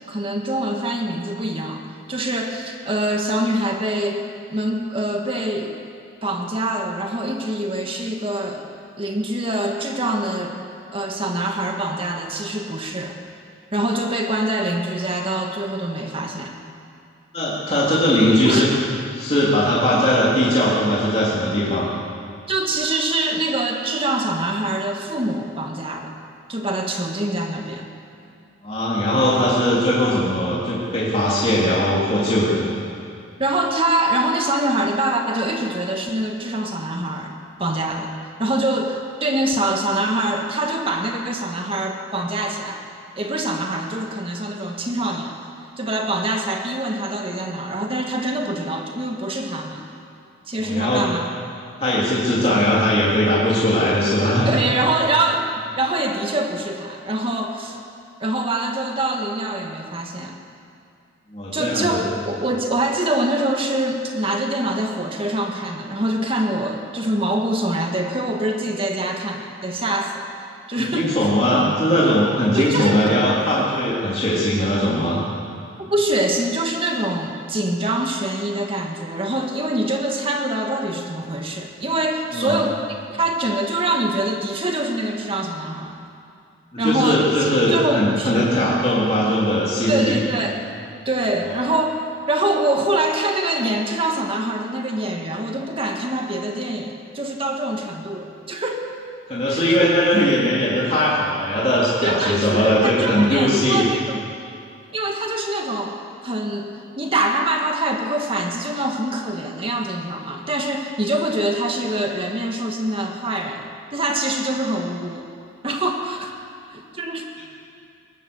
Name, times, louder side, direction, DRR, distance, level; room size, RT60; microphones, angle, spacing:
voice 1, 0.1-1.8 2.1-5.8 6.2-8.7 9.0-10.6 10.9-13.2 13.7-16.5 18.4-18.7 22.5-26.2 26.5-27.9 33.4-38.1 38.4-42.8 43.2-45.3 45.8-49.8 50.5-51.3 52.5-52.7 54.4-57.8 58.2-60.4 61.5-70.3 70.7-71.1 72.5-73.0 75.8-82.8 83.1-86.0 86.8-87.3 87.7-88.5 89.9-90.6 91.0-92.0 92.3-98.9 99.5-99.9 102.0-104.2 104.9-106.0 106.2-115.3 115.6-116.4 116.7-117.3, right 1 dB, 30° right, 3 dB, 1.6 m, -24 dB
voice 2, 17.3-18.7 19.1-21.9 28.6-32.7 50.5-51.1 51.8-54.5 61.3-62.0 70.8-75.2 82.3-82.6 86.7-90.2 99.3-103.9, left 1 dB, 30° left, -7 dB, 3.3 m, -19 dB
21.5 x 19.0 x 7.0 m, 2.4 s
head